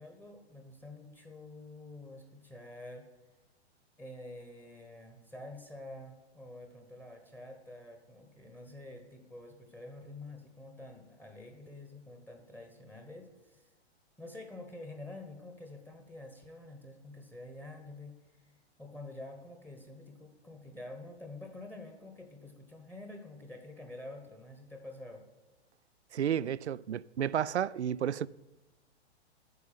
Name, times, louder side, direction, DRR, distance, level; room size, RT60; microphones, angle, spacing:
voice 1, 0.0-3.1 4.0-13.7 14.2-18.2 18.4-18.5 18.8-25.2, left 2 dB, 5° left, 1.1 m, -48 dB
voice 2, 26.1-28.3, right 9 dB, 75° right, 0.5 m, -31 dB
9.5 x 6.8 x 8.8 m
figure-of-eight pair, 110°, 34 cm